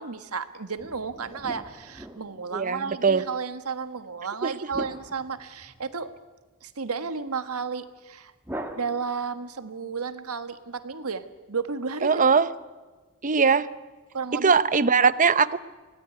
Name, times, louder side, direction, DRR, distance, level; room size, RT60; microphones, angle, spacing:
voice 1, 0.0-6.1 6.6-8.3 8.7-12.2 14.1-14.5, right 5 dB, 80° right, 10 dB, 1.5 m, -33 dB
sound 1, 0.8-2.8 4.7-6.1 8.4-9.5, right 1 dB, 10° right, 1.8 m, -41 dB
voice 2, 2.5-3.2 4.4-4.5 12.0-12.5 13.2-13.7 14.3-15.6, right 5 dB, 35° right, 15 dB, 0.8 m, -21 dB
24.5 x 18.0 x 9.4 m, 1.3 s
head